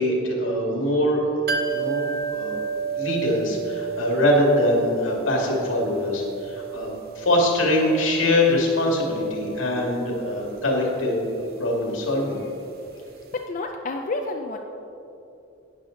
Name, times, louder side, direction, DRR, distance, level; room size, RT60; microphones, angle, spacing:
voice 1, 0.0-1.3 1.7-2.6 3.0-12.4, left 1 dB, 80° left, -1 dB, 2.1 m, -23 dB
sound 1, 1.5-13.1 13.3-13.4, right 7 dB, 50° right, 0.8 m, -33 dB
voice 2, 13.5-14.6, left 2 dB, 40° left, 3 dB, 0.5 m, -29 dB
11.5 x 9.2 x 3.8 m, 2.8 s
head